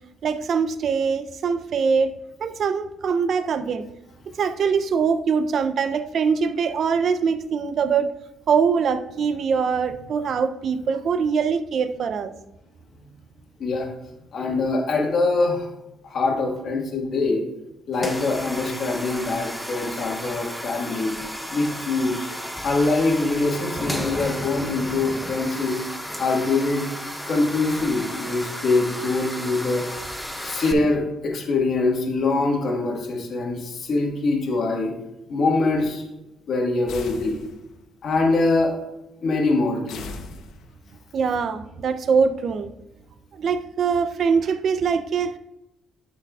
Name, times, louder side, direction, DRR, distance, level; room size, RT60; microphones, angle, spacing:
voice 1, 0.2-2.1 2.4-3.9 4.3-8.1 8.5-12.3 41.1-42.7 43.3-45.4, right 6 dB, 55° right, 11 dB, 0.5 m, -23 dB
voice 2, 14.3-15.7 16.0-17.4 17.9-21.2 21.5-22.3 22.6-25.8 26.2-26.9 27.3-30.0 30.4-34.9 35.3-36.0 36.5-37.4 38.0-38.7 39.2-40.1, left 3 dB, 55° left, 0 dB, 1.6 m, -23 dB
sound 1, 17.9-30.7, equal, ahead, 0.7 m, -33 dB
sound 2, 36.9-37.9 39.9-41.0, left 4 dB, 85° left, 0.8 m, -39 dB
11.0 x 5.9 x 2.4 m, 0.90 s
cardioid pair, 120°, 0 cm